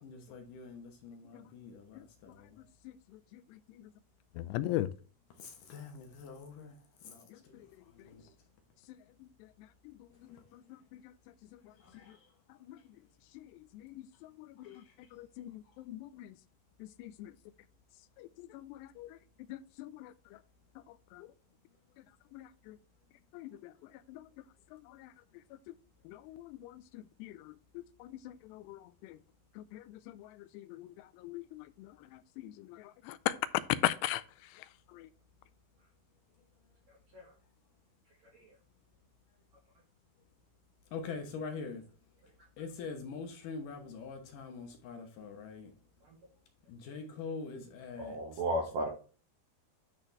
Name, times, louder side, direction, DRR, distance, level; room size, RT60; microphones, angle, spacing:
voice 1, 0.0-2.6 5.4-6.8 7.0-7.5 8.0-8.2 10.3-10.4 11.8-12.2 14.6-14.8 40.9-41.8 42.6-45.7 46.7-48.4, left 4 dB, 65° left, 2.3 m, -44 dB
voice 2, 4.4-4.9 10.5-10.6 12.7-12.8 13.4-13.5 13.7-14.8 15.1-16.3 16.8-17.3 18.2-19.2 19.5-20.1 21.1-21.3 22.3-22.8 23.3-23.7 24.1-24.3 24.7-25.1 26.1-29.2 29.6-31.9 32.4-33.3 33.8-34.2 34.9-35.1, left 15 dB, 90° left, 2.7 m, -40 dB
voice 3, 48.0-48.9, right 1 dB, 70° right, 1.7 m, -34 dB
10.5 x 4.3 x 3.2 m
omnidirectional pair, 4.8 m